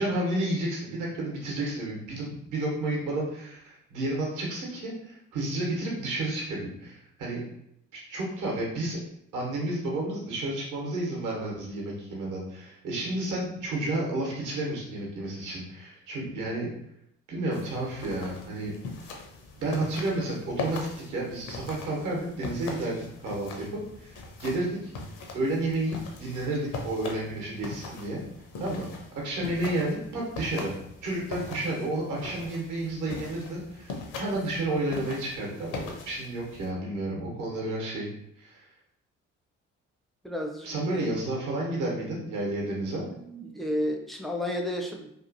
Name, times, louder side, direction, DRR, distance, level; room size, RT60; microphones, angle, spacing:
voice 1, 0.0-7.4 7.9-9.0 9.3-16.7 17.3-18.7 19.6-20.8 21.1-24.9 25.3-28.2 28.6-28.9 29.1-30.7 31.0-38.1 38.4-38.7 40.6-43.0, right 2 dB, 60° right, -2 dB, 1.0 m, -31 dB
sound 1, 17.5-36.7, left 3 dB, 60° left, 0.6 m, -41 dB
voice 2, 40.2-41.1 42.6-42.8 43.0-45.1, equal, ahead, 1 dB, 0.5 m, -32 dB
2.8 x 2.5 x 2.5 m, 0.75 s
hypercardioid pair, 45°, 35 cm